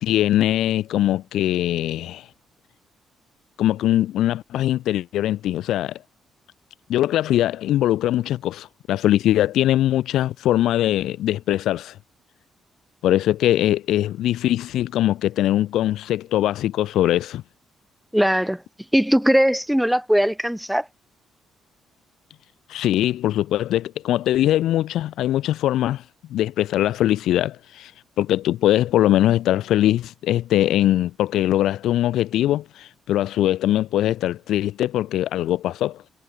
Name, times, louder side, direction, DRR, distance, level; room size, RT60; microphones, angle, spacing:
voice 1, 0.0-2.2 3.6-5.9 6.9-11.9 13.0-17.4 22.7-26.0 26.3-27.9 28.2-36.0, left 13 dB, 85° left, 0.3 m, -21 dB
voice 2, 18.1-18.6 18.9-20.9, equal, ahead, 0.4 m, -19 dB
cardioid pair, 120°, 0 cm